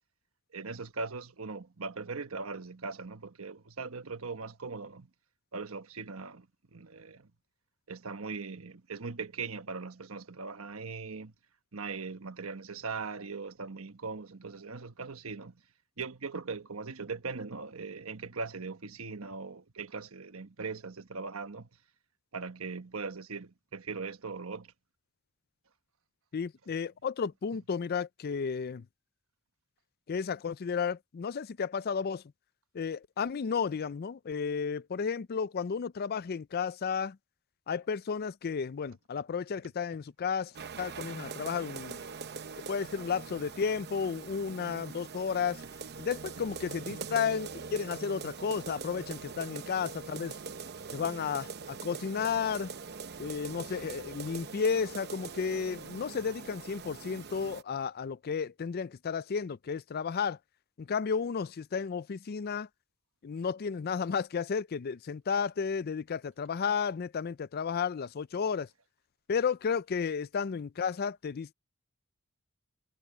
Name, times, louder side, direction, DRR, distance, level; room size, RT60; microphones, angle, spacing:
voice 1, 0.5-5.1 5.5-7.3 7.9-11.3 11.7-15.5 16.0-21.7 22.3-24.7, right 4 dB, 80° right, 1.2 m, -40 dB
voice 2, 26.3-28.8 30.1-32.2 32.7-37.2 37.7-42.0 42.7-45.6 46.0-50.3 50.9-52.7 53.2-60.4 60.8-62.7 63.2-68.7 69.3-71.5, left 6 dB, 45° left, 0.4 m, -33 dB
sound 1, 40.5-57.6, right 5 dB, 50° right, 0.8 m, -43 dB
head